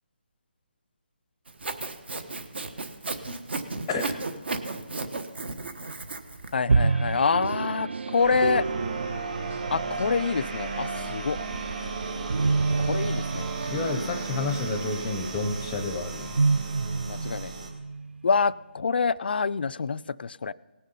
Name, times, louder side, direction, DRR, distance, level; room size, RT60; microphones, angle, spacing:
Sawing, 1.5-6.5, right 3 dB, 70° right, 1.1 m, -34 dB
voice 1, 6.5-8.7 9.7-11.4 12.8-13.5 17.1-17.5 18.2-20.5, left 5 dB, 65° left, 18 dB, 0.3 m, -26 dB
sound 1, 6.7-18.3, right 4 dB, 90° right, 0.3 m, -29 dB
sound 2, 8.2-17.7, right 3 dB, 40° right, 1.6 m, -36 dB
voice 2, 13.7-16.4, left 3 dB, 5° left, 6 dB, 0.6 m, -30 dB
18.0 x 6.7 x 5.5 m, 1.3 s
hypercardioid pair, 170°, 6 cm